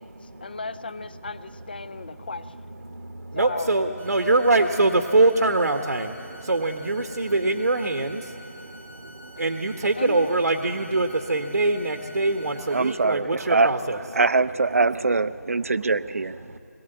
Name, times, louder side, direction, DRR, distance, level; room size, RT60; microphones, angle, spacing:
voice 1, 0.0-2.5 3.4-3.8 9.9-10.3, left 3 dB, 35° left, 15 dB, 0.5 m, -36 dB
voice 2, 3.4-6.1 6.5-8.2 9.4-14.0, right 2 dB, 85° right, 5 dB, 1.3 m, -23 dB
sound 1, 4.0-13.0, equal, 10° left, 1.1 m, -47 dB
voice 3, 12.7-13.7 14.1-16.6, right 3 dB, 60° right, 15 dB, 0.6 m, -23 dB
21.5 x 17.0 x 7.9 m, 2.9 s
figure-of-eight pair, 175°, 9 cm